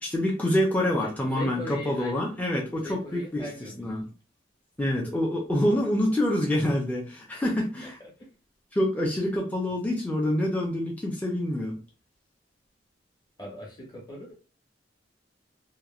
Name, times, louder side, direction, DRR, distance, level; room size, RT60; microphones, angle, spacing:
voice 1, 0.0-3.5 3.8-4.0 4.8-7.9 8.7-11.8, left 1 dB, 10° left, 0.5 m, -26 dB
voice 2, 0.9-2.3 2.7-4.1 5.7-5.8 7.8-7.9 8.2-8.3 9.7-9.8 13.4-14.3, left 1 dB, 25° left, 1.0 m, -40 dB
2.9 x 2.1 x 2.4 m
head